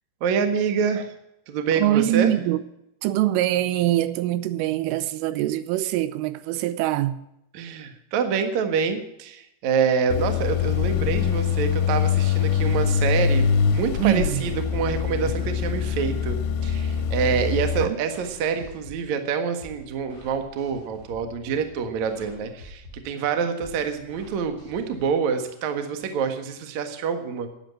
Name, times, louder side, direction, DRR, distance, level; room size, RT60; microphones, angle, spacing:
voice 1, 0.2-1.1 1.5-2.3 7.5-16.4 16.6-27.5, right 6 dB, 70° right, 1.7 m, -26 dB
voice 2, 1.8-2.6 3.0-7.2 14.0-14.4 17.8-18.0, right 13 dB, 85° right, 3.3 m, -23 dB
sound 1, 10.1-17.9, left 7 dB, 85° left, 3.2 m, -24 dB
sound 2, 17.1-25.1, left 1 dB, 20° right, 1.7 m, -47 dB
12.0 x 9.1 x 8.9 m
omnidirectional pair, 5.8 m